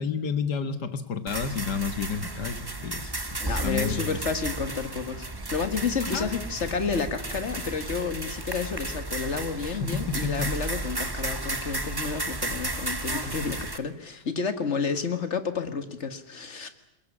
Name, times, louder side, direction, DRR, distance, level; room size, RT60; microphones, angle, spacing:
voice 1, 0.0-4.2 6.1-6.3 9.7-10.5, left 5 dB, 70° left, 10 dB, 2.2 m, -31 dB
sound 1, 1.3-13.8, right 2 dB, 15° right, 1.3 m, -33 dB
voice 2, 3.4-16.7, left 5 dB, 40° left, 10 dB, 1.9 m, -30 dB
22.0 x 21.5 x 9.9 m, 0.82 s
omnidirectional pair, 1.8 m